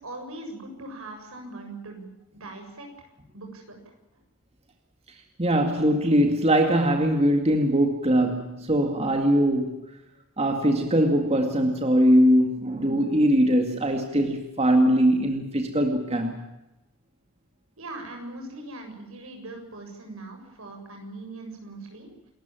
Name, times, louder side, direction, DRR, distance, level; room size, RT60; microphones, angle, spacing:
voice 1, 0.0-3.1 3.3-3.8 17.8-22.3, right 2 dB, 70° right, 3 dB, 7.5 m, -40 dB
voice 2, 5.1-9.8 10.4-16.4, equal, 30° right, 4 dB, 2.2 m, -21 dB
28.5 x 14.0 x 9.0 m, 0.96 s
head